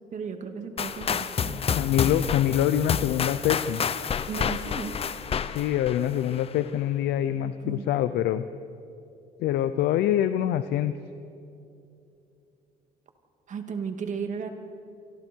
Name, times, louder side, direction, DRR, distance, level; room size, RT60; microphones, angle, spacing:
voice 1, 0.1-1.6 4.3-5.0 7.4-7.9 13.5-14.5, right 6 dB, 45° right, 5 dB, 2.5 m, -35 dB
sound 1, 0.8-6.6, left 7 dB, 35° left, 0.7 m, -29 dB
voice 2, 1.8-3.8 5.5-8.4 9.4-10.9, left 11 dB, 75° left, 12 dB, 0.7 m, -25 dB
28.5 x 24.5 x 4.6 m, 2.7 s
cardioid pair, 110°, 17 cm